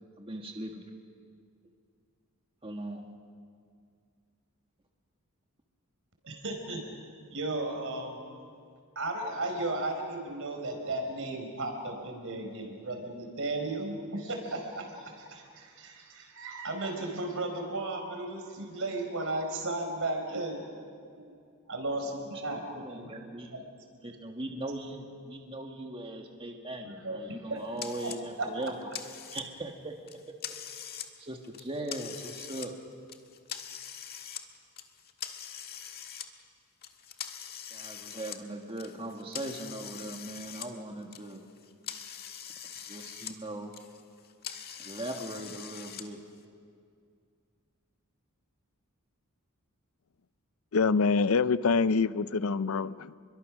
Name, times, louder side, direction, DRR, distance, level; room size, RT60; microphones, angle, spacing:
voice 1, 0.2-0.8 2.6-3.1 21.9-22.0 22.5-23.5 24.0-28.9 29.3-30.0 31.2-32.7 37.7-41.5 42.9-43.7 44.8-46.2, right 1 dB, 25° right, 1.8 m, -39 dB
voice 2, 6.2-6.9 7.3-8.2 8.9-20.7 21.1-21.3 21.7-23.1 23.5-23.6 24.0-24.1 24.5-24.6 27.0-27.6 28.4-28.5, right 2 dB, 65° right, 4.8 m, -35 dB
sound 1, 27.8-28.2 28.6-29.7 30.1-31.1 31.4-32.7 33.1-34.5 34.8-36.3 36.8-40.7 41.0-43.4 43.6-46.0, left 9 dB, 45° left, 1.6 m, -43 dB
voice 3, 50.7-53.2, left 4 dB, 70° left, 0.6 m, -25 dB
29.5 x 23.0 x 6.3 m
head